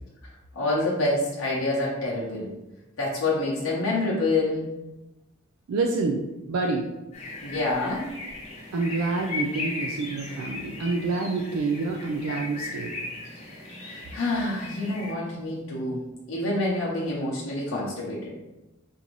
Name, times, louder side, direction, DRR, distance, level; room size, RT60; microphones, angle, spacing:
voice 1, 0.5-2.5 3.0-4.7 7.4-8.1 13.8-18.3, left 2 dB, 75° left, -5 dB, 0.8 m, -27 dB
voice 2, 5.7-6.2 6.5-6.9 8.7-12.9, right 3 dB, 85° right, 1 dB, 0.4 m, -27 dB
sound 1, 7.1-15.1, left 3 dB, 30° left, 0.7 m, -37 dB
3.7 x 2.6 x 3.0 m, 1.0 s
head